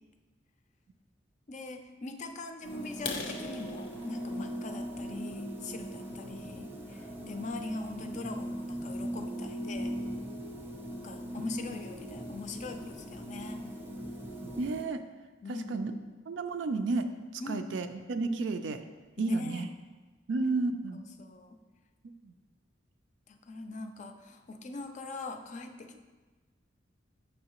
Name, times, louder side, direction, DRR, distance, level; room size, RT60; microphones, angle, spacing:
voice 1, 1.5-10.0 11.0-13.6 15.4-15.9 17.4-17.7 19.2-19.7 20.9-21.6 23.3-26.0, left 3 dB, 40° left, 6 dB, 0.4 m, -42 dB
sound 1, 2.6-14.8, equal, 10° right, 0.5 m, -40 dB
sound 2, 2.9-6.7 7.2-7.4 7.9-8.0 8.4-8.6 8.9-9.0 9.4-9.5 9.8-10.3, left 4 dB, 85° left, 0.7 m, -43 dB
voice 2, 14.4-15.0 15.7-15.9 16.3-17.1 17.3-18.8 19.2-19.7 20.3-21.0 22.0-22.3, right 3 dB, 70° right, 8 dB, 0.4 m, -32 dB
6.5 x 5.4 x 2.9 m, 1.3 s
head